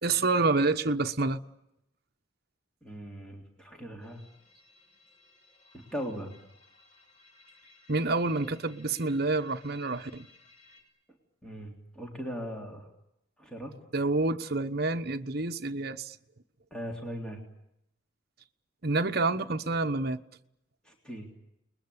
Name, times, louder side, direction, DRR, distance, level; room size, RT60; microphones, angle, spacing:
voice 1, 0.0-1.4 7.9-10.3 13.9-16.2 18.8-20.2, right 3 dB, 50° right, 1.1 m, -28 dB
voice 2, 2.8-4.3 5.7-6.3 11.4-12.9 13.4-13.7 16.7-17.4 20.8-21.3, equal, 5° left, 3.4 m, -39 dB
sound 1, 4.0-10.8, left 3 dB, 30° left, 6.4 m, -59 dB
29.5 x 21.0 x 8.6 m
head